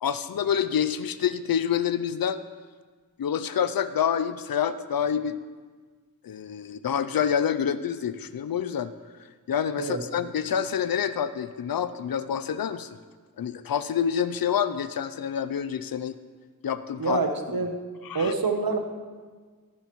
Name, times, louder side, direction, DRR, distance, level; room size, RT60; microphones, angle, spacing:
voice 1, 0.0-2.4 3.2-5.4 6.2-8.9 9.5-12.9 13.4-16.2 16.6-17.2 18.0-18.3, left 8 dB, 80° left, 13 dB, 0.5 m, -27 dB
voice 2, 17.0-17.7 18.1-18.8, right 4 dB, 85° right, 6 dB, 1.0 m, -26 dB
14.0 x 11.0 x 3.0 m, 1.5 s
wide cardioid pair, 50°, 35 cm